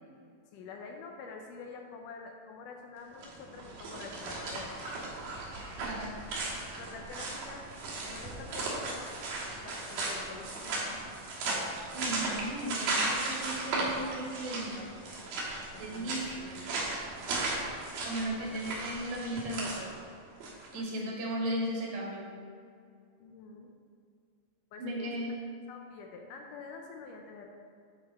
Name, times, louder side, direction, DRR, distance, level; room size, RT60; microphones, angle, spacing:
voice 1, 0.5-4.7 6.8-7.7 8.0-9.1 9.6-11.0 11.5-11.6 15.7-16.3 18.5-18.8 20.7-21.2 23.2-23.7 24.7-25.1 25.7-27.5, left 4 dB, 80° left, 2 dB, 2.0 m, -47 dB
sound 1, 3.1-20.7, right 2 dB, 90° right, 3.3 m, -36 dB
voice 2, 5.8-6.2 11.9-14.9 15.8-16.7 18.0-19.9 20.7-22.3 24.8-25.4, right 1 dB, 70° right, -2 dB, 2.8 m, -36 dB
9.7 x 5.2 x 4.1 m, 2.2 s
omnidirectional pair, 4.0 m